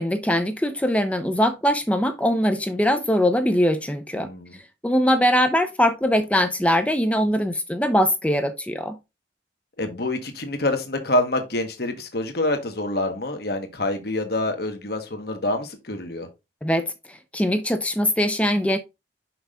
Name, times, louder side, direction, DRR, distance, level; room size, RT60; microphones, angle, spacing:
voice 1, 0.0-4.3 4.8-9.0 16.6-18.8, equal, 5° left, 0.6 m, -22 dB
voice 2, 4.2-4.5 9.8-16.3, left 1 dB, 55° left, 1.4 m, -26 dB
5.9 x 5.5 x 3.6 m
head